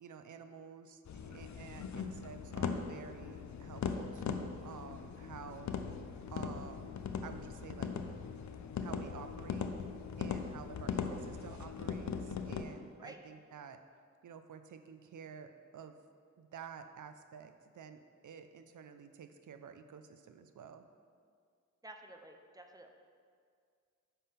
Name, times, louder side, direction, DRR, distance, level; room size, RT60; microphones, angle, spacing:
voice 1, 0.0-5.7 6.3-6.9 7.2-7.9 8.8-9.7 10.2-13.8 14.2-16.0 16.4-20.8, right 7 dB, 75° right, 9 dB, 0.5 m, -51 dB
sound 1, 1.1-12.6, left 6 dB, 65° left, 0.5 m, -40 dB
voice 2, 21.8-22.9, right 1 dB, 10° right, 4 dB, 0.5 m, -52 dB
9.5 x 3.7 x 5.7 m, 2.2 s
wide cardioid pair, 175°, 31 cm